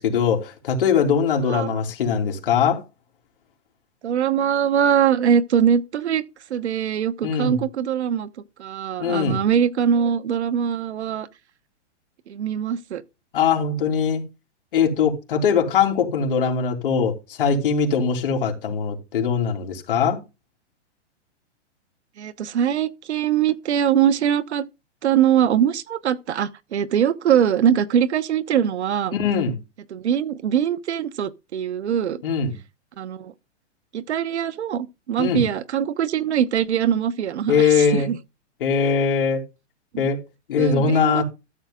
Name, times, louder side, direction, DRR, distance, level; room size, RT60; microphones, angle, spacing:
voice 1, 0.0-2.8 7.2-7.6 9.0-9.4 13.3-14.2 14.7-20.2 29.1-29.6 32.2-32.6 35.2-35.4 37.5-38.1 38.6-39.4 40.0-40.2 40.5-41.2, left 6 dB, 45° left, 3.2 m, -21 dB
voice 2, 4.0-6.2 6.5-8.3 8.6-11.3 12.3-13.0 22.2-24.6 25.0-29.1 29.9-32.2 33.0-33.3 33.9-38.2 39.9-40.0 40.6-41.2, right 9 dB, 65° right, 1.2 m, -22 dB
13.0 x 7.2 x 3.8 m
hypercardioid pair, 180°, 36 cm